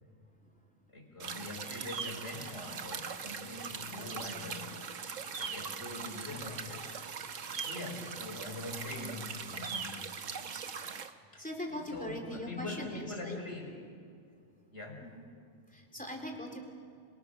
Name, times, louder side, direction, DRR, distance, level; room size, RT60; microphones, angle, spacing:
voice 1, 0.9-4.9 5.4-6.9 7.6-10.1 11.3-13.8 14.7-15.1, left 2 dB, 60° left, 1 dB, 5.0 m, -43 dB
sound 1, 1.2-11.1, right 6 dB, 80° right, 1.5 m, -41 dB
voice 2, 11.4-13.4 15.0-15.2 15.7-16.7, equal, 5° left, 2 dB, 3.4 m, -41 dB
28.0 x 23.5 x 6.6 m, 2.4 s
omnidirectional pair, 1.3 m